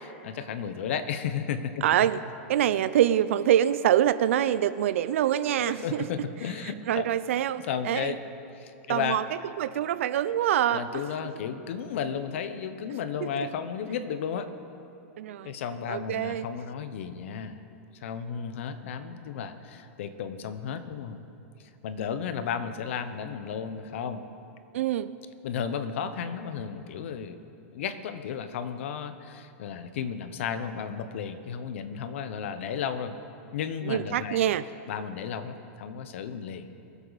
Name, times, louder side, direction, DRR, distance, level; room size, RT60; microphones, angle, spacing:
voice 1, 0.0-1.8 5.5-7.1 7.6-8.2 8.5-9.2 10.7-14.5 15.4-17.6 18.0-21.2 21.6-24.2 25.4-27.4 27.7-33.2 33.5-34.4 34.9-36.7, left 7 dB, 70° left, 10 dB, 1.0 m, -33 dB
voice 2, 1.8-2.2 2.5-6.1 6.9-8.1 8.9-9.2 9.6-10.8 13.2-13.3 15.2-15.5 15.9-16.5 24.7-25.1 33.9-34.6, right 11 dB, 80° right, 15 dB, 0.5 m, -25 dB
23.5 x 8.2 x 4.1 m, 2.8 s
supercardioid pair, 160°, 7 cm